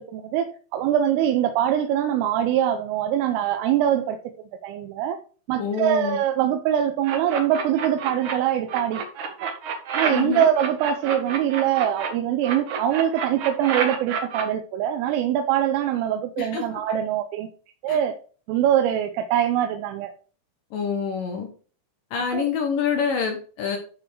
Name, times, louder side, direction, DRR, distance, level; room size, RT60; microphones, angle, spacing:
voice 1, 0.0-4.2 4.6-5.2 5.5-9.5 9.9-17.5 17.8-18.2 18.5-20.1 22.3-22.5, right 10 dB, 85° right, 6 dB, 3.4 m, -23 dB
voice 2, 5.6-6.2 10.1-10.5 16.4-16.6 17.9-18.0 20.7-21.5 22.1-23.8, left 6 dB, 75° left, 3 dB, 2.0 m, -26 dB
sound 1, 7.0-8.3 8.7-12.1 12.4-14.4, right 6 dB, 65° right, 2.0 m, -29 dB
12.0 x 4.2 x 4.7 m, 0.40 s
omnidirectional pair, 5.7 m